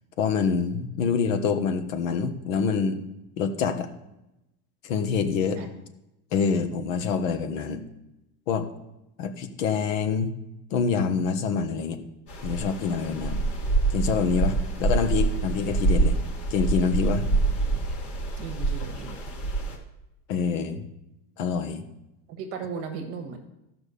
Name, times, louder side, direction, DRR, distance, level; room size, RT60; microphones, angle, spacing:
voice 1, 0.2-3.0 3.4-3.9 4.8-5.6 6.3-7.8 8.5-8.7 9.2-10.3 10.7-12.0 12.4-13.4 13.9-16.2 16.5-17.3 20.3-20.8 21.4-21.8, left 6 dB, 65° left, 7 dB, 1.5 m, -26 dB
sound 1, 12.3-19.8, right 3 dB, 30° left, 1.8 m, -26 dB
voice 2, 18.4-19.2 22.3-23.4, right 5 dB, 30° right, 5 dB, 1.5 m, -36 dB
13.0 x 6.0 x 6.9 m, 0.90 s
supercardioid pair, 180°, 43 cm